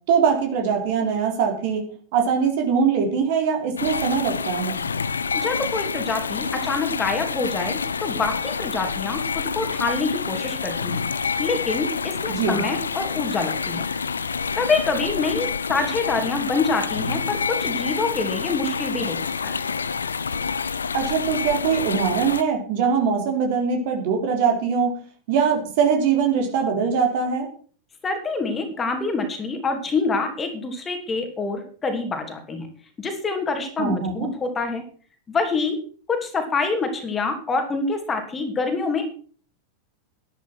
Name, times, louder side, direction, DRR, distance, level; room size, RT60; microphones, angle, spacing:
voice 1, 0.1-1.9 2.1-4.8 12.3-12.6 20.9-25.0 25.3-27.5 33.8-34.3, right 6 dB, 50° right, 3 dB, 4.2 m, -22 dB
sound 1, 3.8-22.4, left 5 dB, 75° left, 0.7 m, -28 dB
voice 2, 5.3-11.0 11.4-13.8 14.6-19.5 28.0-32.7 33.0-34.8 35.3-35.8 36.1-39.1, left 3 dB, 20° left, 5 dB, 3.0 m, -26 dB
12.0 x 11.5 x 6.3 m, 0.43 s
figure-of-eight pair, 90°, 0 cm